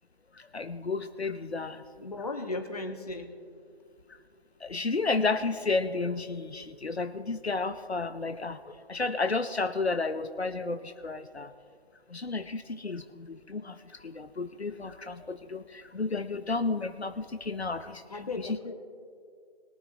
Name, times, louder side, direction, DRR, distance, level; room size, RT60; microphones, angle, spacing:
voice 1, 0.3-1.8 4.6-11.5 12.1-18.6, left 3 dB, 85° left, 10 dB, 0.8 m, -32 dB
voice 2, 2.0-3.3 18.1-18.7, left 2 dB, 35° left, 4 dB, 1.5 m, -36 dB
22.0 x 10.0 x 2.9 m, 2.2 s
figure-of-eight pair, 155°, 31 cm